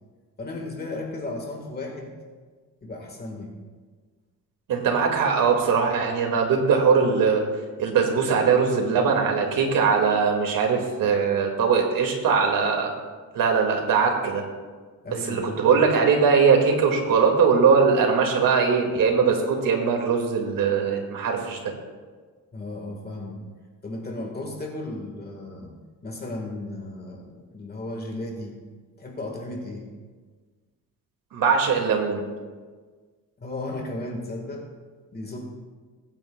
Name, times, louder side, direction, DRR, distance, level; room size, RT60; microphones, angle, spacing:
voice 1, 0.4-2.1 2.8-3.5 15.0-15.7 22.5-23.4 23.8-25.7 26.0-28.6 29.0-29.9 33.4-34.7 35.1-35.4, left 2 dB, 30° left, 1 dB, 1.6 m, -35 dB
voice 2, 4.7-7.4 7.8-12.9 13.3-14.4 15.3-21.7 31.3-32.2, right 5 dB, 80° right, 2 dB, 2.1 m, -21 dB
21.0 x 9.0 x 2.3 m, 1.5 s
cardioid pair, 150°, 33 cm